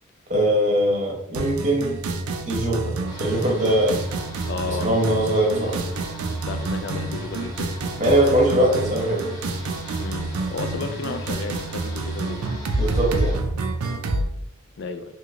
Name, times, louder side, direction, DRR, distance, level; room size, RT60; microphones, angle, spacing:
voice 1, 0.3-1.9 2.5-2.9 3.2-3.9 4.8-5.8 8.0-9.2 12.8-13.4, right 1 dB, 35° right, -2 dB, 0.8 m, -21 dB
sound 1, 1.3-14.3, right 2 dB, 85° right, 0.4 m, -28 dB
sound 2, 3.0-13.4, equal, 15° left, 0.6 m, -41 dB
voice 2, 4.5-4.9 6.5-7.8 10.0-12.4 14.8-15.1, left 4 dB, 50° left, 7 dB, 0.3 m, -32 dB
3.1 x 2.8 x 2.4 m, 0.79 s
head